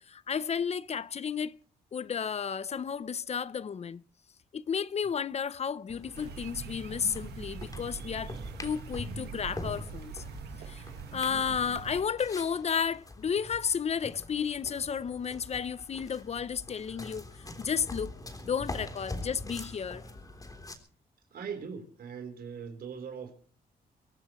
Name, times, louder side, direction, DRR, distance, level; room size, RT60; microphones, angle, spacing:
voice 1, 0.0-1.5 1.9-4.0 4.5-8.3 8.6-10.2 10.7-10.8 11.1-17.2 17.6-18.1 18.4-20.0, left 7 dB, 40° left, 0.7 m, -32 dB
sound 1, 5.9-20.8, left 2 dB, 20° left, 3.5 m, -44 dB
sound 2, 6.1-12.0, right 7 dB, 90° right, 1.6 m, -43 dB
voice 2, 21.3-23.3, right 6 dB, 65° right, 4.1 m, -40 dB
24.0 x 17.5 x 3.1 m
cardioid pair, 110°, 17 cm